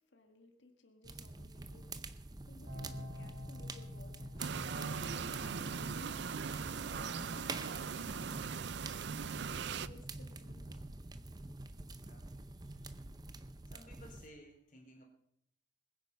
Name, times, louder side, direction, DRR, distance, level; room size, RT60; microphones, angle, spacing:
voice 1, 0.0-8.7 9.3-10.9 12.5-13.1, left 2 dB, 70° left, 5 dB, 1.7 m, -60 dB
sound 1, 1.0-14.3, right 2 dB, 20° right, 0.6 m, -47 dB
sound 2, 2.7-10.8, left 1 dB, 45° right, 3.4 m, -50 dB
sound 3, 4.4-9.9, right 6 dB, 60° right, 0.5 m, -40 dB
voice 2, 11.9-12.3 12.7-12.8 13.7-15.0, equal, 40° left, 3 dB, 3.1 m, -57 dB
21.0 x 9.5 x 5.4 m, 0.73 s
head